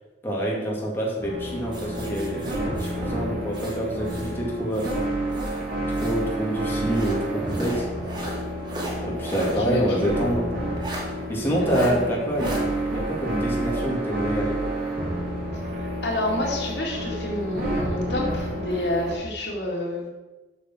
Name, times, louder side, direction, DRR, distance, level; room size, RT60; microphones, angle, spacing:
voice 1, 0.2-4.9 5.9-7.9 9.0-10.5 11.3-12.6 12.9-14.6, right 1 dB, 15° left, -4 dB, 2.2 m, -27 dB
sound 1, 1.2-19.1, right 1 dB, 55° right, 3.5 m, -30 dB
sound 2, 1.7-4.4 4.7-6.3 6.9-9.6 10.0-10.1 10.8-11.1 11.6-11.9 12.4-12.6, right 1 dB, 25° right, 2.1 m, -37 dB
voice 2, 11.6-12.1 16.0-20.1, left 1 dB, 80° left, -2 dB, 2.4 m, -28 dB
8.1 x 6.6 x 6.2 m, 1.2 s
head